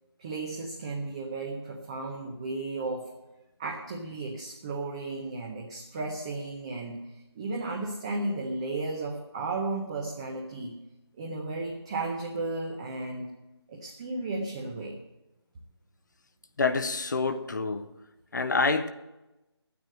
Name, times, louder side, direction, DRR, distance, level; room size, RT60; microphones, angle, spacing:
voice 1, 0.2-3.1 3.6-7.0 7.4-10.7 11.2-13.3 13.7-15.0, right 3 dB, 15° right, 0.7 m, -34 dB
voice 2, 16.6-17.9 18.3-18.9, left 4 dB, 45° left, 0.8 m, -27 dB
11.5 x 9.4 x 7.6 m
figure-of-eight pair, 165°, 14 cm